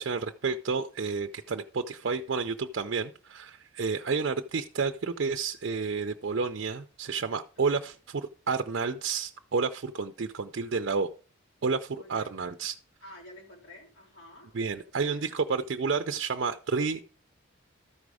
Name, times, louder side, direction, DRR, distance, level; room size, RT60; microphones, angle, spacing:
voice 1, 0.0-11.1 11.6-12.8 14.5-17.0, right 4 dB, 55° right, 7 dB, 0.4 m, -30 dB
voice 2, 11.9-12.3 12.6-12.7 13.0-15.5, left 1 dB, 75° left, -3 dB, 3.6 m, -51 dB
13.0 x 5.1 x 4.8 m, 0.40 s
head